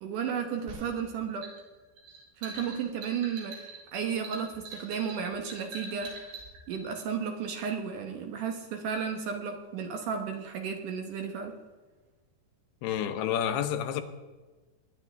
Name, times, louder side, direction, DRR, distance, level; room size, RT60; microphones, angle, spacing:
voice 1, 0.0-1.5 2.4-3.6 3.9-6.1 6.7-11.6, right 7 dB, 65° right, 2.3 m, -33 dB
sound 1, 0.7-6.8, right 3 dB, 85° right, 4.5 m, -44 dB
voice 2, 12.8-14.0, left 9 dB, 80° left, 2.9 m, -29 dB
21.0 x 9.8 x 3.4 m
omnidirectional pair, 4.5 m